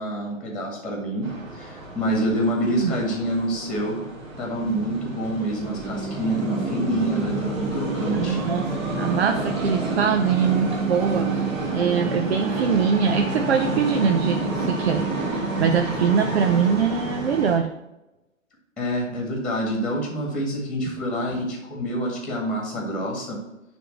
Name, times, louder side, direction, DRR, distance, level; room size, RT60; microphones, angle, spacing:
voice 1, 0.0-4.0 4.4-8.4 18.8-23.4, right 1 dB, ahead, 0 dB, 1.8 m, -27 dB
sound 1, 1.2-17.6, right 3 dB, 35° right, 2.9 m, -28 dB
voice 2, 8.1-11.3 11.7-17.7, right 7 dB, 55° right, 6 dB, 0.8 m, -23 dB
10.0 x 3.5 x 6.5 m, 0.96 s
figure-of-eight pair, 130°, 40 cm